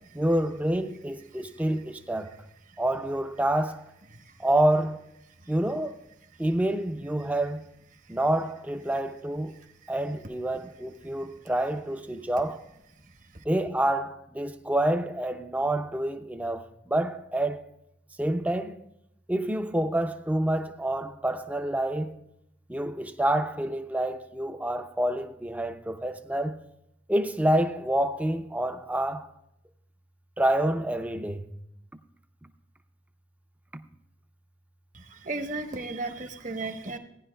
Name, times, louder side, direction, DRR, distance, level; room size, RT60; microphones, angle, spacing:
voice 1, 0.1-2.3 2.8-3.8 4.4-5.0 5.5-6.0 6.4-7.6 8.1-9.5 9.9-12.6 13.5-17.6 18.2-18.8 19.3-22.1 22.7-26.5 27.1-29.3 30.4-31.4, right 1 dB, 10° right, 0.4 m, -27 dB
voice 2, 34.9-37.0, right 2 dB, 40° right, 0.9 m, -34 dB
17.5 x 10.5 x 2.2 m
head